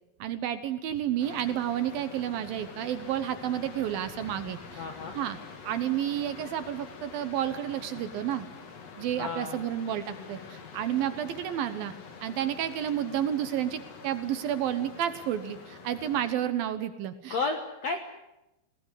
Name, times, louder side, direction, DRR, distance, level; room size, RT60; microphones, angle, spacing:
voice 1, 0.2-4.8 5.1-5.4 5.6-8.5 9.0-11.9 12.2-17.4, right 10 dB, 70° right, 11 dB, 2.5 m, -31 dB
sound 1, 1.2-16.3, left 5 dB, 45° left, 2.8 m, -46 dB
voice 2, 4.8-5.2 9.2-9.6 17.3-18.0, left 4 dB, 65° left, 6 dB, 1.7 m, -32 dB
21.5 x 18.0 x 9.9 m, 0.93 s
omnidirectional pair, 4.9 m